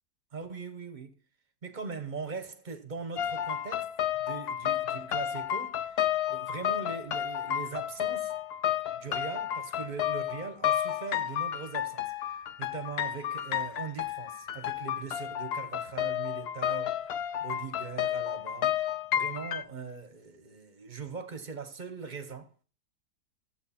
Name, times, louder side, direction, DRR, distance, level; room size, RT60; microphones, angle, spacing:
voice 1, 0.3-1.1 1.6-6.0 6.3-8.3 8.9-22.5, right 5 dB, 30° right, 1.0 m, -41 dB
sound 1, 3.2-19.6, left 11 dB, 75° left, 0.5 m, -31 dB
14.0 x 7.7 x 4.3 m
omnidirectional pair, 1.8 m